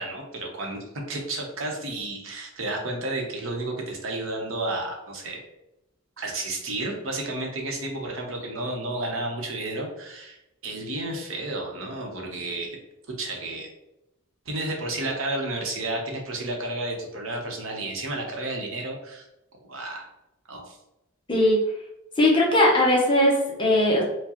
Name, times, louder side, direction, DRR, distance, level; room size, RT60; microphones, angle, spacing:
voice 1, 0.0-5.4 6.2-10.4 10.6-12.8 13.2-13.7 14.5-19.3 19.7-20.1 20.5-20.8, right 2 dB, 70° right, 1 dB, 0.9 m, -31 dB
voice 2, 21.3-21.6 22.2-24.0, left 1 dB, 25° left, -2 dB, 0.7 m, -19 dB
4.6 x 2.2 x 2.9 m, 0.89 s
head